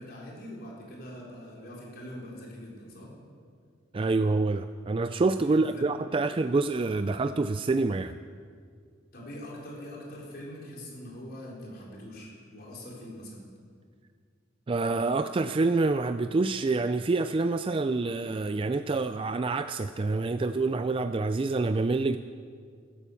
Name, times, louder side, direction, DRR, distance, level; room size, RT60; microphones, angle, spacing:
voice 1, 0.0-3.1 5.4-5.9 9.1-13.5, equal, 50° left, -4 dB, 4.5 m, -43 dB
voice 2, 3.9-8.1 14.7-22.2, right 3 dB, 25° right, 10 dB, 0.4 m, -27 dB
15.5 x 12.5 x 7.1 m, 2.1 s
head